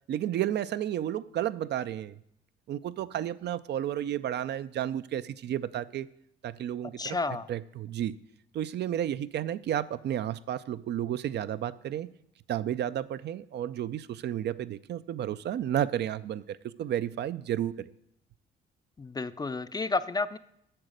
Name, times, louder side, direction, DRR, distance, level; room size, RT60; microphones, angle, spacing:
voice 1, 0.1-2.2 2.7-6.1 6.4-7.2 7.5-8.2 8.5-12.1 12.5-17.9, right 11 dB, 60° right, 14 dB, 0.4 m, -32 dB
voice 2, 7.0-7.5 19.0-20.4, left 3 dB, 20° left, 14 dB, 0.4 m, -31 dB
8.8 x 6.3 x 6.5 m, 0.75 s
cardioid pair, 90°, 20 cm